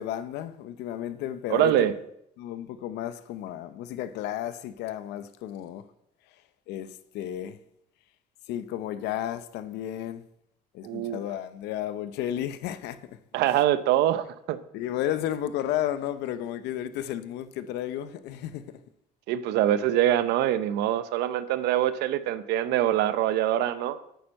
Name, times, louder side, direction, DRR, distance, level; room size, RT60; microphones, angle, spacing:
voice 1, 0.0-1.9 2.4-5.9 6.7-7.6 8.5-10.3 10.7-13.2 13.5-13.6 14.7-18.8, left 11 dB, 90° left, 0.7 m, -33 dB
voice 2, 1.5-1.9 10.8-11.2 13.3-14.6 19.3-24.0, right 12 dB, 90° right, 0.8 m, -24 dB
9.3 x 8.8 x 5.3 m
cardioid pair, 110°, 17 cm